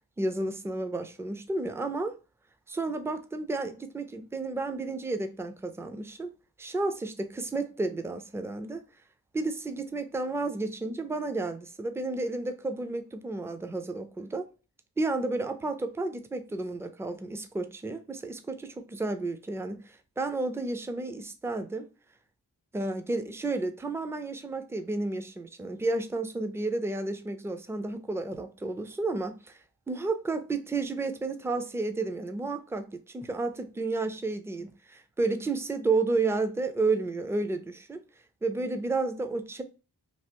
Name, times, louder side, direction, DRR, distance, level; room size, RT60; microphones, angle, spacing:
voice 1, 0.2-2.1 2.7-6.3 6.6-8.8 9.3-14.5 15.0-21.9 22.7-29.6 29.9-38.0 38.4-39.6, right 3 dB, 5° right, 0.4 m, -31 dB
3.3 x 2.4 x 2.8 m
cardioid pair, 50°, 38 cm